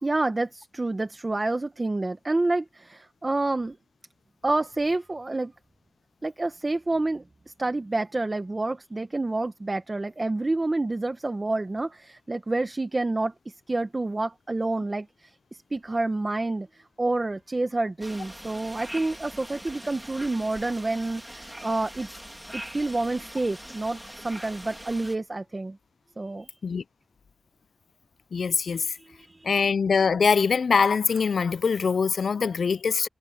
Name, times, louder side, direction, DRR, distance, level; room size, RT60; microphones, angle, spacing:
voice 1, 0.0-3.8 4.4-5.5 6.2-22.1 22.5-25.8 26.2-26.5 29.0-29.5, right 2 dB, 30° right, 1.1 m, -28 dB
sound 1, 18.0-25.2, equal, 5° right, 2.8 m, -42 dB
voice 2, 28.3-29.0 29.4-33.1, left 5 dB, 85° left, 0.3 m, -23 dB
wide cardioid pair, 105°, 0 cm